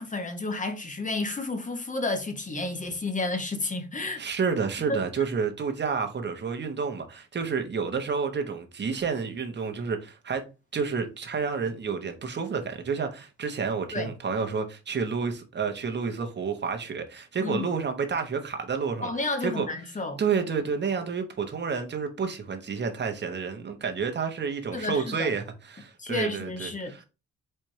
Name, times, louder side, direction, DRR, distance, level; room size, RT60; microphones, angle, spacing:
voice 1, 0.0-4.2 4.9-5.0 13.9-14.1 17.4-17.7 19.0-20.2 24.7-25.3 26.0-26.9, left 3 dB, 25° left, 0.9 m, -31 dB
voice 2, 4.2-10.4 10.7-19.7 20.2-27.0, right 5 dB, 35° right, 1.0 m, -30 dB
4.4 x 2.5 x 4.7 m
cardioid pair, 110°, 30 cm